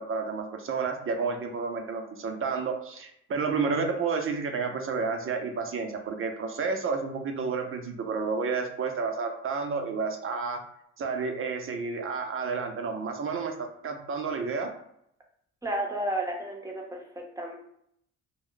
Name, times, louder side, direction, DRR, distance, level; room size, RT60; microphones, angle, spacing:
voice 1, 0.0-10.6 11.0-14.7, right 4 dB, 45° right, 4 dB, 0.6 m, -31 dB
voice 2, 15.6-17.5, right 1 dB, 10° right, 0 dB, 0.7 m, -32 dB
2.2 x 2.1 x 3.7 m, 0.73 s
cardioid pair, 90°, 30 cm